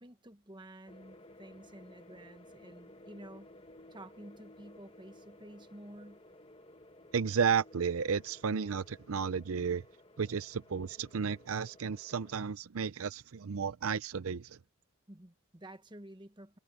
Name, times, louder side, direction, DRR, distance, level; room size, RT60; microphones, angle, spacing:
voice 1, 0.0-3.5 3.9-6.2 15.1-16.6, right 1 dB, 20° right, 1.3 m, -51 dB
sound 1, 0.9-12.5, left 1 dB, 25° left, 1.4 m, -56 dB
voice 2, 7.1-9.8 10.2-14.6, right 6 dB, 75° right, 0.6 m, -33 dB
head